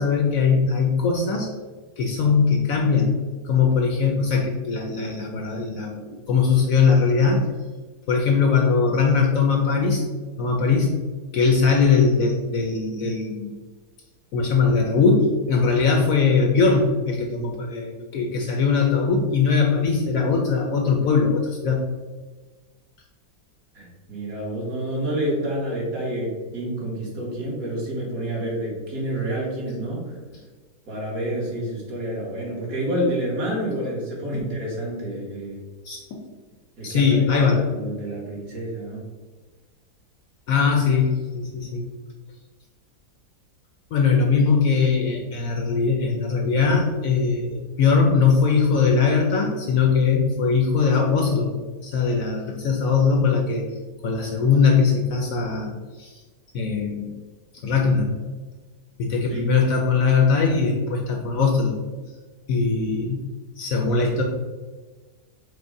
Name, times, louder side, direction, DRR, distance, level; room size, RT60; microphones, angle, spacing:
voice 1, 0.0-1.5 2.0-3.2 3.4-7.4 8.1-10.0 10.4-11.0 11.3-13.5 14.3-21.8 34.3-34.4 35.8-36.2 36.8-37.7 40.5-41.9 43.9-51.5 51.8-53.7 54.0-55.7 56.0-56.2 56.5-57.1 57.5-58.1 59.0-61.7 62.5-63.2 63.6-64.2, left 5 dB, 70° left, 1 dB, 0.9 m, -20 dB
voice 2, 23.7-30.2 30.9-35.6 36.8-39.0 59.3-59.5, right 1 dB, 60° right, -4 dB, 1.7 m, -29 dB
5.0 x 2.1 x 4.7 m, 1.3 s
omnidirectional pair, 1.8 m